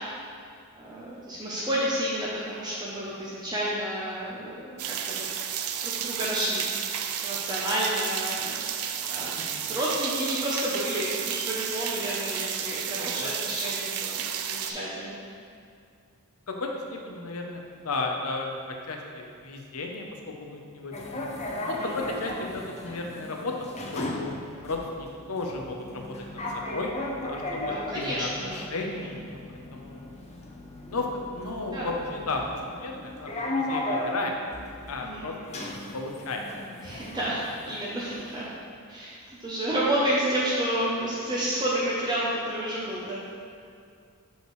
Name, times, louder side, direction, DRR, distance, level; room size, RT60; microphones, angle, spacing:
voice 1, 0.8-5.2 5.8-8.6 9.1-15.2 21.7-21.9 27.6-28.6 29.0-29.1 31.7-31.9 35.0-35.3 36.8-38.5 38.9-43.2, right 1 dB, 20° right, -7 dB, 0.7 m, -30 dB
sound 1, 4.8-14.7, right 9 dB, 75° right, 0.4 m, -32 dB
voice 2, 13.0-13.3 16.5-20.0 20.4-21.3 21.7-23.5 23.9-24.3 24.6-26.9 27.2-30.1 30.9-34.4 34.9-35.6 35.9-36.6, left 3 dB, 75° left, 2 dB, 0.7 m, -34 dB
sound 2, 20.9-38.4, left 1 dB, 30° left, 0.6 m, -36 dB
6.5 x 5.4 x 3.2 m, 2.4 s
head